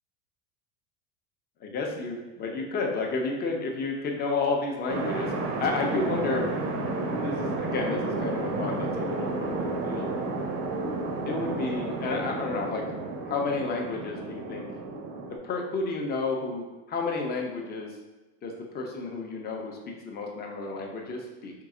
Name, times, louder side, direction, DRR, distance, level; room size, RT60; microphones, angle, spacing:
voice 1, 1.6-5.3 5.6-6.5 7.2-10.1 11.3-12.9 13.2-14.6 15.3-18.0 18.4-21.5, left 3 dB, 30° left, 1 dB, 0.7 m, -31 dB
sound 1, 4.9-15.4, right 3 dB, 40° right, 0.7 m, -31 dB
4.6 x 2.0 x 3.7 m, 1.1 s
supercardioid pair, 125°, 33 cm